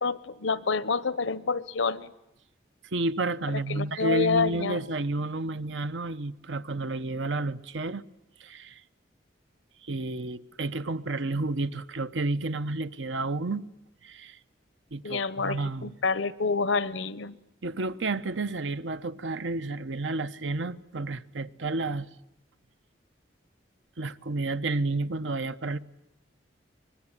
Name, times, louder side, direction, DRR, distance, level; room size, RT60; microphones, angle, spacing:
voice 1, 0.0-2.1 3.5-4.8 15.0-17.4, left 4 dB, 80° left, 0.9 m, -28 dB
voice 2, 2.9-8.0 8.4-8.8 9.9-13.6 14.0-14.4 14.9-15.9 17.6-22.1 24.0-25.8, right 2 dB, 75° right, 0.8 m, -31 dB
23.5 x 20.5 x 9.9 m
head